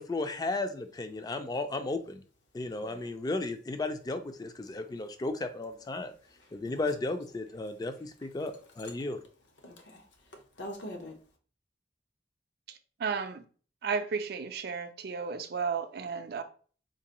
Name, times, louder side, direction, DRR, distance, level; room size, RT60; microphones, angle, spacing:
voice 1, 0.0-2.2 2.5-6.1 6.5-9.2, left 2 dB, 20° left, 0.3 m, -34 dB
voice 2, 2.8-3.1 4.7-4.8 6.3-6.9 8.4-8.5 8.8-8.9 9.6-11.2, left 1 dB, 80° left, 0.9 m, -46 dB
voice 3, 12.7-13.4 13.8-16.4, right 5 dB, 60° right, 0.4 m, -33 dB
3.8 x 2.5 x 2.9 m
head